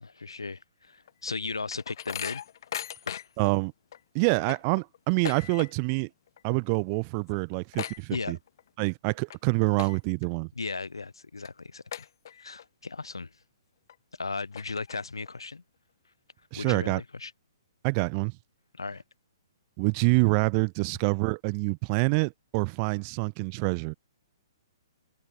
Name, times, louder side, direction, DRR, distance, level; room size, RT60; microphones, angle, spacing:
voice 1, 0.0-2.4 3.1-3.2 8.1-8.4 10.6-12.1 12.4-13.3 14.2-15.6 16.6-17.3 18.7-19.0, left 4 dB, 90° left, 1.0 m, -36 dB
sound 1, 1.1-3.5 3.9-4.0 4.3-6.0 6.3-6.6 6.9-7.0 7.3-8.7 9.1-9.4 9.7-10.3 10.8-10.9 11.4-11.5 11.9-12.6 13.1-13.2 13.9-14.0 14.4-15.3, left 10 dB, 60° left, 1.1 m, -38 dB
voice 2, 3.4-3.7 4.1-6.1 6.4-8.4 8.8-10.5 16.5-17.0 17.8-18.3 19.8-23.9, right 36 dB, 35° right, 1.2 m, -26 dB
hypercardioid pair, 125°, 2 cm